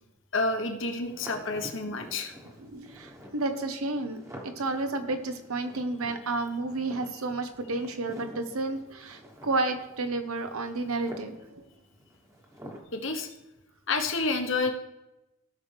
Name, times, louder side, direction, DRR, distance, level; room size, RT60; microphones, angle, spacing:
voice 1, 0.3-2.3 12.9-13.3 13.9-14.7, left 3 dB, 60° left, 4 dB, 1.2 m, -29 dB
sound 1, 1.1-12.8, equal, 15° right, 1.2 m, -48 dB
voice 2, 2.6-11.7, right 2 dB, 90° right, 7 dB, 1.1 m, -31 dB
17.0 x 5.9 x 3.4 m, 0.97 s
head